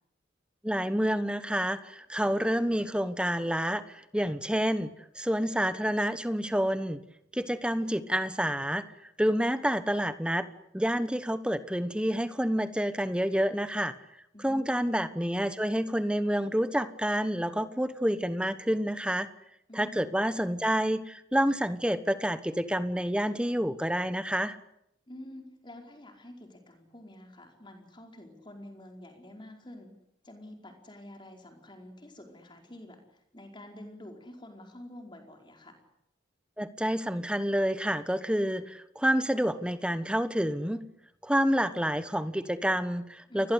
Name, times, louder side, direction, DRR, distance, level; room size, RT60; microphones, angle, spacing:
voice 1, 0.6-7.0 7.3-8.9 9.2-10.5 10.7-13.9 14.4-19.3 19.7-24.6 36.6-40.8 41.2-43.5, equal, 5° right, 12 dB, 1.2 m, -28 dB
voice 2, 14.3-15.2 19.7-20.2 25.1-29.9 30.2-35.8 43.3-43.5, left 1 dB, 25° left, 3 dB, 4.7 m, -48 dB
29.5 x 21.0 x 8.3 m, 0.78 s
head